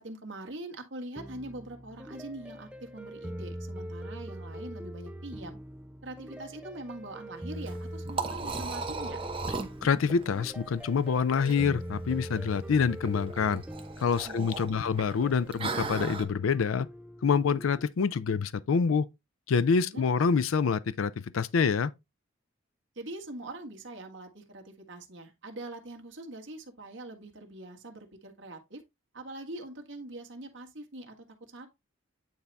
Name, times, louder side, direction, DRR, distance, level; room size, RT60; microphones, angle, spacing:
voice 1, 0.0-5.6 6.0-9.2 14.2-14.9 19.8-20.0 22.9-28.8 29.1-31.2 31.5-31.7, right 1 dB, 65° right, 1.6 m, -43 dB
sound 1, 1.1-17.9, equal, 5° right, 0.4 m, -42 dB
Liquid, 7.6-16.2, right 3 dB, 25° right, 0.9 m, -38 dB
voice 2, 9.8-13.6 14.0-16.9 17.2-19.1 19.5-21.9, left 5 dB, 85° left, 0.4 m, -26 dB
9.2 x 4.1 x 3.4 m
head